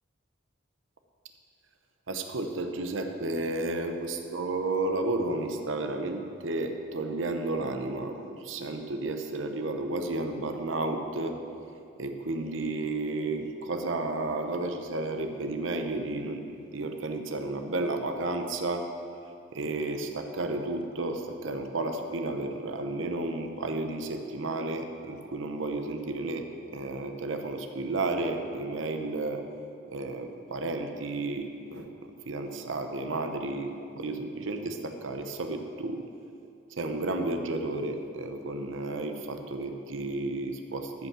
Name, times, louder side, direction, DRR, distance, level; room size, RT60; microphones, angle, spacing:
voice 1, 2.1-11.4 12.0-16.4 16.7-18.9 19.5-29.4 29.9-31.9 32.3-36.0 36.8-41.1, right 2 dB, 75° right, 6 dB, 0.8 m, -32 dB
14.5 x 5.6 x 6.1 m, 2.6 s
head